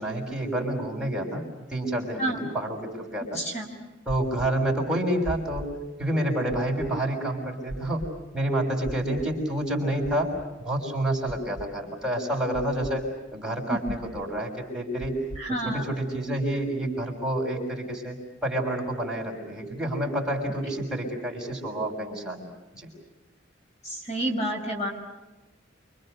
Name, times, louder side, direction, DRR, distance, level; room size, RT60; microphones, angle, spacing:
voice 1, 0.0-1.4 1.7-3.4 4.1-5.7 6.0-8.0 8.3-10.3 10.6-13.0 13.3-15.1 15.6-18.2 18.4-22.5 22.7-22.9, right 1 dB, 5° right, -2 dB, 6.5 m, -28 dB
voice 2, 3.3-3.7 13.7-13.8 15.4-15.8 23.8-24.9, right 1 dB, 35° left, 2 dB, 5.7 m, -29 dB
sound 1, 5.2-5.7 6.5-6.9 7.7-8.1 8.8-9.3 10.0-10.4 11.3-11.7 12.5-12.9 13.8-14.2 15.0-15.4, right 1 dB, 65° left, 2.8 m, -37 dB
30.0 x 26.5 x 6.8 m, 1.1 s
head